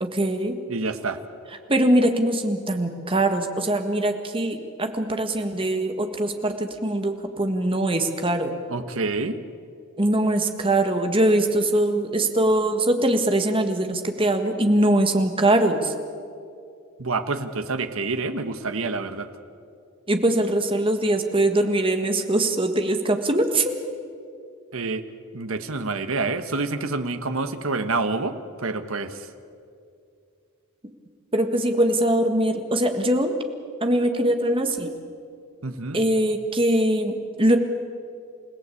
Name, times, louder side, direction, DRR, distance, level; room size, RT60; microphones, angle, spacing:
voice 1, 0.0-0.5 1.7-8.5 10.0-15.9 20.1-23.7 31.3-33.3 33.8-34.9 35.9-37.6, right 1 dB, 25° right, 6 dB, 1.6 m, -22 dB
voice 2, 0.7-1.2 8.7-9.4 17.0-19.3 24.7-25.0 25.3-29.3 35.6-36.0, right 3 dB, 65° right, 9 dB, 1.4 m, -27 dB
28.5 x 16.5 x 8.5 m, 2.4 s
head